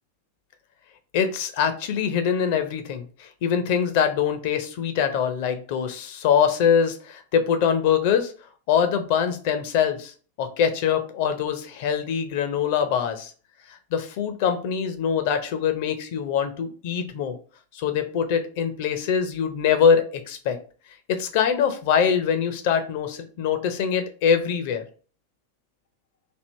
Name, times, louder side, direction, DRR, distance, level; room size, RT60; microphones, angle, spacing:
voice 1, 1.1-8.3 8.7-10.1 10.4-13.3 13.7-17.4 17.7-20.6 21.1-24.8, left 7 dB, 50° left, 8 dB, 0.7 m, -23 dB
4.4 x 2.8 x 3.2 m, 0.39 s
figure-of-eight pair, 90°, 0 cm